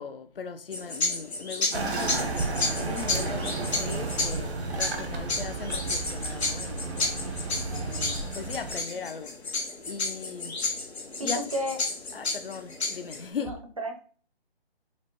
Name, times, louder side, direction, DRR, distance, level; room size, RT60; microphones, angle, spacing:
voice 1, 0.0-2.2 2.8-7.2 7.8-9.4 9.9-10.6 11.2-11.4 12.1-13.5, left 6 dB, 60° left, 0.6 m, -38 dB
sound 1, 0.7-13.3, left 3 dB, 85° left, 1.5 m, -32 dB
sound 2, 1.7-8.8, right 3 dB, 80° right, 1.1 m, -32 dB
voice 2, 11.2-11.8 13.4-14.0, equal, 35° right, 0.5 m, -32 dB
5.7 x 2.1 x 2.9 m
hypercardioid pair, 170°, 32 cm